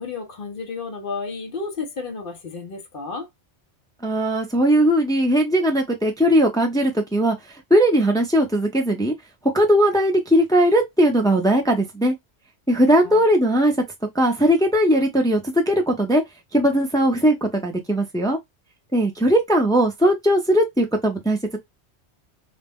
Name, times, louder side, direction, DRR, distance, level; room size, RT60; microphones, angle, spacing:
voice 1, 0.0-3.3 13.0-13.3, left 4 dB, 55° left, 0.8 m, -32 dB
voice 2, 4.0-7.4 7.7-9.1 9.5-12.1 12.7-13.7 14.1-16.2 16.5-18.4 18.9-21.6, equal, 5° left, 0.3 m, -19 dB
2.2 x 2.1 x 3.4 m
omnidirectional pair, 1.1 m